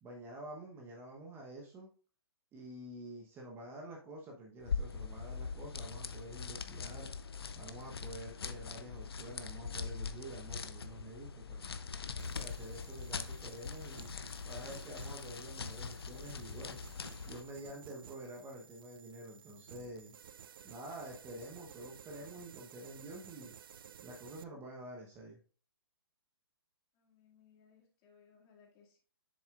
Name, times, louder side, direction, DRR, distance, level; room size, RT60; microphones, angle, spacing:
voice 1, 0.0-1.9 2.5-7.1 7.5-11.7 12.3-14.1 14.4-16.8 17.2-20.1 20.6-23.5 24.0-25.4, right 1 dB, 15° right, 0 dB, 1.0 m, -48 dB
sound 1, 4.6-17.5, left 5 dB, 70° left, 0.7 m, -42 dB
sound 2, 12.2-24.4, right 8 dB, 60° right, 0.4 m, -56 dB
voice 2, 26.9-29.0, left 6 dB, 25° left, 0 dB, 2.1 m, -65 dB
7.3 x 7.1 x 2.4 m, 0.41 s
figure-of-eight pair, 130°, 13 cm